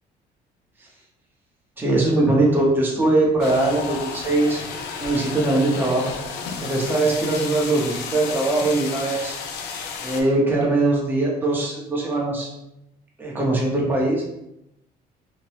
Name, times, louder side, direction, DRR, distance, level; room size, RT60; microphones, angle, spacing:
voice 1, 1.8-4.6 5.0-6.1 6.6-9.4 10.0-12.5 13.2-14.2, right 2 dB, 10° right, -3 dB, 0.7 m, -21 dB
sound 1, 3.4-10.2, left 5 dB, 85° left, 0.5 m, -32 dB
2.9 x 2.1 x 3.2 m, 0.83 s
cardioid pair, 110°, 17 cm